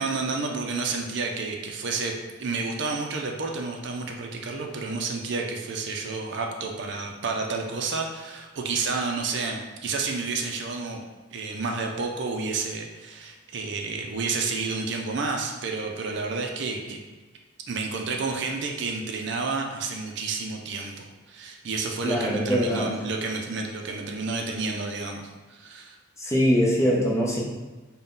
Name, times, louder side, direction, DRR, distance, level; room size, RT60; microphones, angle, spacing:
voice 1, 0.0-11.0 11.3-17.0 17.7-26.0, right 4 dB, 60° right, 2 dB, 0.4 m, -30 dB
voice 2, 22.0-22.9 26.2-27.4, equal, 15° left, -4 dB, 0.6 m, -22 dB
3.9 x 2.2 x 3.7 m, 1.2 s
head